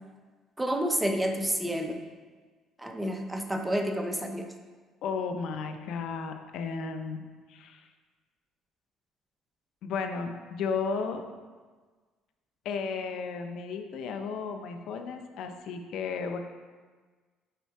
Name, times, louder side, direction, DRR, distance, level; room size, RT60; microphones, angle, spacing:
voice 1, 0.6-2.0 2.8-4.5, equal, 10° right, 4 dB, 0.7 m, -29 dB
voice 2, 5.0-7.2 7.5-7.9 9.8-11.2 12.6-16.4, left 5 dB, 70° left, 6 dB, 0.7 m, -34 dB
6.9 x 4.5 x 4.7 m, 1.4 s
cardioid pair, 105°, 0 cm